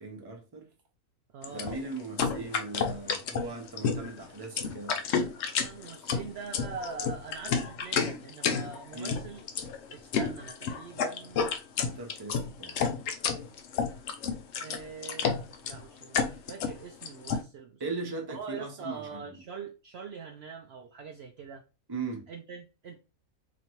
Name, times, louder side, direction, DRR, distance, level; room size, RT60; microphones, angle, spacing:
voice 1, 0.0-0.7 1.5-5.0 8.9-9.2 11.8-12.9 17.8-19.4 21.9-22.3, right 3 dB, 25° right, 0.6 m, -39 dB
voice 2, 1.3-1.8 5.5-9.4 9.9-11.5 14.6-17.8 18.3-21.6 22.3-23.0, right 5 dB, 75° right, 0.5 m, -43 dB
sound 1, 1.4-17.4, left 6 dB, 65° left, 0.7 m, -30 dB
4.1 x 2.9 x 2.9 m
omnidirectional pair, 1.6 m